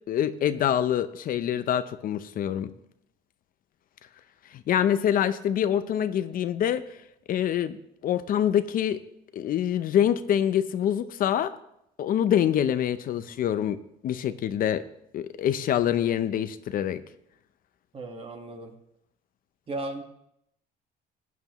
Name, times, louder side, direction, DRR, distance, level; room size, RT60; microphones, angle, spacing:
voice 1, 0.1-2.7 4.5-6.8 7.3-7.8 8.0-9.0 9.3-11.6 12.0-14.8 15.1-17.0, left 10 dB, 55° left, 12 dB, 0.6 m, -25 dB
voice 2, 17.9-18.7 19.7-20.0, right 2 dB, 35° right, 4 dB, 1.6 m, -35 dB
16.0 x 9.3 x 3.1 m, 0.78 s
cardioid pair, 110°, 17 cm